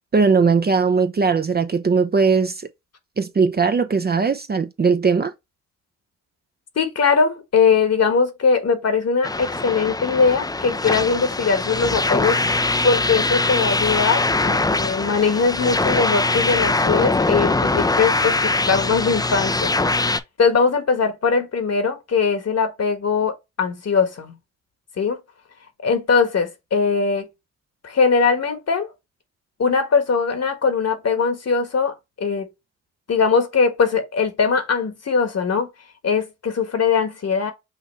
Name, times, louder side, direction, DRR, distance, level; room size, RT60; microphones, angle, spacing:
voice 1, 0.1-2.6 3.2-5.3, right 5 dB, 30° right, 0.6 m, -19 dB
voice 2, 6.8-12.4 12.8-19.7 20.4-24.3 25.0-25.2 25.8-27.3 27.8-28.9 29.6-32.5 33.1-35.7 36.0-37.5, left 5 dB, 50° left, 1.4 m, -20 dB
sound 1, 9.2-20.2, left 2 dB, 10° left, 0.5 m, -22 dB
5.8 x 2.5 x 3.2 m
supercardioid pair, 50°, 34 cm